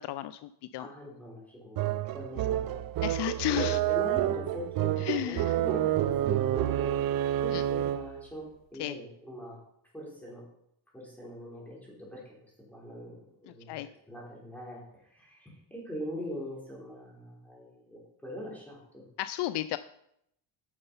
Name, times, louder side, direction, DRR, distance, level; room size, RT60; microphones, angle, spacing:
voice 1, 0.1-0.9 3.0-3.8 5.0-5.6 7.5-7.6 8.8-9.0 13.7-13.9 19.2-19.8, left 13 dB, 65° left, 14 dB, 0.5 m, -33 dB
voice 2, 0.8-2.8 3.5-7.0 7.4-9.6 9.9-10.4 10.9-13.8 14.1-14.8 15.1-19.0, equal, 5° left, -4 dB, 4.2 m, -42 dB
sound 1, 1.8-8.2, right 12 dB, 50° right, 0.5 m, -29 dB
10.0 x 6.6 x 5.5 m, 0.75 s
cardioid pair, 120°, 44 cm